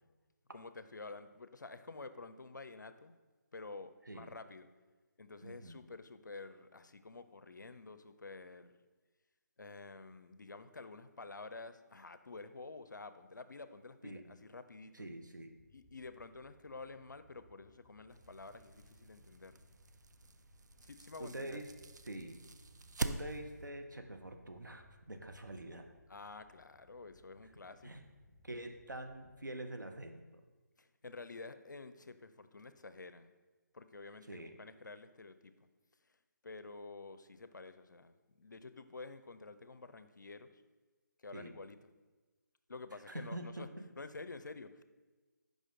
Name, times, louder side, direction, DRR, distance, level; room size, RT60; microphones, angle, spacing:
voice 1, 0.5-3.1 3.5-4.7 5.2-8.7 9.6-15.0 15.7-19.6 20.8-21.6 26.1-28.1 30.8-33.3 33.7-35.5 36.4-40.6 41.2-41.8 42.7-43.7 44.0-44.8, left 3 dB, 80° left, 11 dB, 0.5 m, -50 dB
voice 2, 5.4-5.8 14.0-14.3 14.9-15.5 21.2-21.7 22.1-22.4 23.0-25.8 27.8-28.0 28.4-30.2 34.3-34.5 41.3-41.6 43.1-43.7, right 1 dB, 85° right, 5 dB, 0.8 m, -45 dB
sound 1, 15.6-29.4, left 1 dB, 15° left, 0.5 m, -66 dB
sound 2, 18.1-23.7, right 3 dB, 70° right, 0.4 m, -45 dB
6.4 x 5.1 x 3.7 m, 1.3 s
figure-of-eight pair, 150°, 10 cm